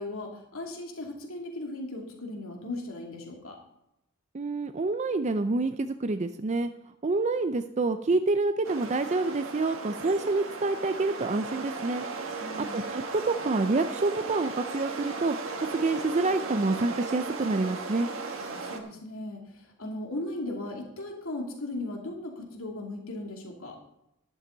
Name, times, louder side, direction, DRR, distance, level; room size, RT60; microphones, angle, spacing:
voice 1, 0.0-3.6 12.4-12.9 18.4-23.8, left 2 dB, 70° left, 0 dB, 2.8 m, -37 dB
voice 2, 4.3-6.7 7.0-12.1 12.7-18.1, right 3 dB, 35° right, 9 dB, 0.5 m, -27 dB
sound 1, 8.6-18.8, right 4 dB, 65° right, 1.5 m, -36 dB
12.0 x 11.5 x 3.9 m, 0.83 s
head